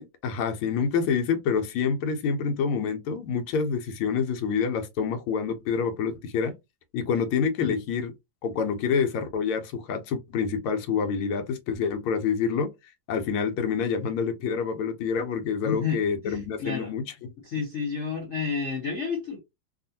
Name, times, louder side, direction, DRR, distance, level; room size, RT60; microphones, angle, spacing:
voice 1, 0.0-6.5 6.9-8.1 8.4-12.7 13.1-17.3, left 6 dB, 90° left, 1.5 m, -27 dB
voice 2, 15.6-16.9 17.4-19.4, left 5 dB, 55° left, 0.8 m, -31 dB
3.4 x 2.4 x 2.7 m
omnidirectional pair, 2.3 m